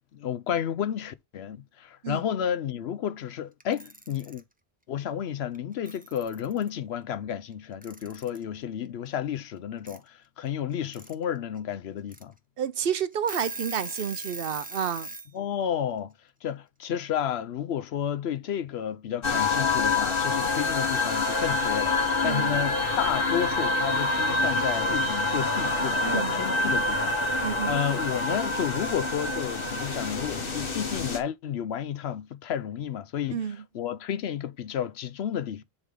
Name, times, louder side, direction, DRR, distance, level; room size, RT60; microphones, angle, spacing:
voice 1, 0.1-4.4 4.9-12.3 15.3-16.1 16.4-33.4 33.7-35.6, left 9 dB, 75° left, 0.9 m, -31 dB
Alarm / Clock, 3.6-4.4 5.5-5.6 5.9-6.7 7.8-8.4 9.9-10.0 10.7-11.1 11.6-11.7 12.1-12.2 12.8-12.9 13.1-15.3, right 2 dB, 10° right, 0.7 m, -39 dB
voice 2, 12.6-15.1 22.2-22.6 26.0-26.4 27.4-27.8 33.3-33.6, right 8 dB, 65° right, 0.8 m, -30 dB
sound 1, 19.2-31.2, left 3 dB, 60° left, 1.5 m, -26 dB
9.8 x 3.5 x 3.7 m
omnidirectional pair, 1.1 m